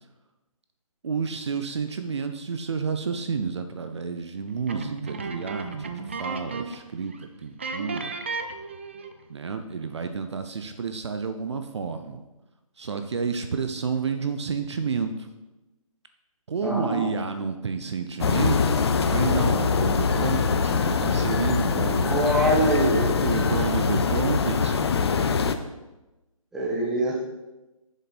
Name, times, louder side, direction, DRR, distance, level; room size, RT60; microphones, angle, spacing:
voice 1, 1.0-7.1 7.4-8.2 9.3-12.2 12.8-15.3 16.5-22.2 23.2-24.9, right 5 dB, 50° right, 8 dB, 0.7 m, -30 dB
sound 1, 4.7-6.9 7.1-7.3 7.6-9.2, right 4 dB, 20° right, 0.3 m, -34 dB
voice 2, 16.6-17.1 22.0-23.1 26.5-27.1, right 1 dB, ahead, -6 dB, 0.9 m, -24 dB
sound 2, 18.2-25.5, left 5 dB, 45° left, 0.6 m, -23 dB
7.4 x 6.8 x 4.2 m, 1.0 s
hypercardioid pair, 160°, 18 cm